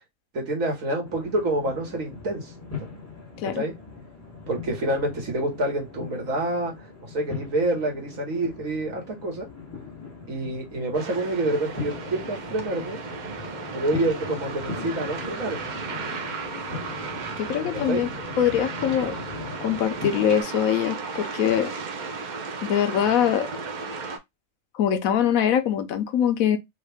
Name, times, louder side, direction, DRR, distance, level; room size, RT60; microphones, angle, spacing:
voice 1, 0.3-2.5 3.5-3.7 4.5-6.7 7.0-9.5 10.3-13.0 13.7-15.7 17.6-18.1, right 1 dB, 70° right, 1.7 m, -27 dB
sound 1, 1.0-20.4, left 5 dB, 10° left, 1.2 m, -40 dB
sound 2, 10.9-24.2, right 4 dB, 55° right, 0.5 m, -35 dB
voice 2, 17.4-18.1 18.4-19.1 19.6-21.7 22.6-23.5 24.7-26.6, left 9 dB, 75° left, 1.0 m, -23 dB
3.6 x 2.3 x 3.3 m
omnidirectional pair, 1.5 m